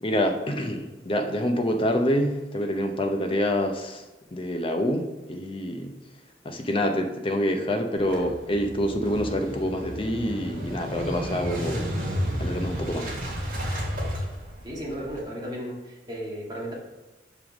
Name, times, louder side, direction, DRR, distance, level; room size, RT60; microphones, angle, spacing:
voice 1, 0.0-4.0 4.3-5.9 6.4-11.9 12.4-13.1, equal, 30° left, 5 dB, 0.7 m, -26 dB
Motorcycle / Engine starting, 8.0-15.2, equal, 50° right, 2.4 m, -32 dB
voice 2, 14.6-16.7, equal, 25° right, -4 dB, 2.0 m, -34 dB
5.5 x 5.1 x 6.1 m, 1.1 s
head